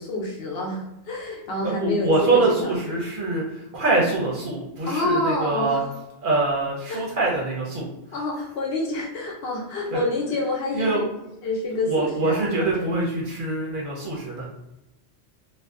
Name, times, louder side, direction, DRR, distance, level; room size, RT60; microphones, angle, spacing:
voice 1, 0.0-3.0 4.9-5.9 6.9-7.1 8.1-11.0 11.4-12.9, left 2 dB, 65° left, -2 dB, 0.8 m, -28 dB
voice 2, 1.6-5.8 6.2-7.9 9.9-10.0 10.7-11.0 11.8-14.4, right 3 dB, 55° right, -3 dB, 0.7 m, -24 dB
2.5 x 2.1 x 2.3 m, 0.88 s
omnidirectional pair, 1.1 m